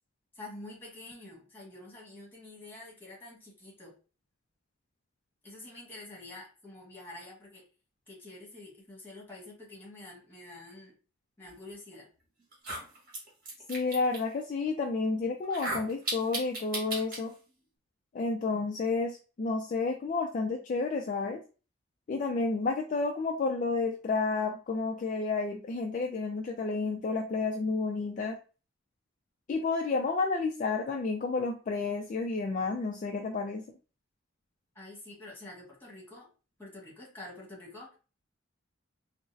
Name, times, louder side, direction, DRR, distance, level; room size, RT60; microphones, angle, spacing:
voice 1, 0.3-3.9 5.4-7.6 8.1-10.9 11.4-12.1 34.7-36.3 36.6-38.0, left 2 dB, 10° left, -3 dB, 1.3 m, -47 dB
sound 1, 11.9-12.0 12.5-14.2 15.4-17.2, right 2 dB, 50° right, 1.3 m, -36 dB
voice 2, 13.7-17.3 18.1-21.4 22.1-28.4 29.5-33.6, left 3 dB, 40° left, 2 dB, 0.3 m, -31 dB
3.8 x 2.0 x 2.5 m, 0.34 s
head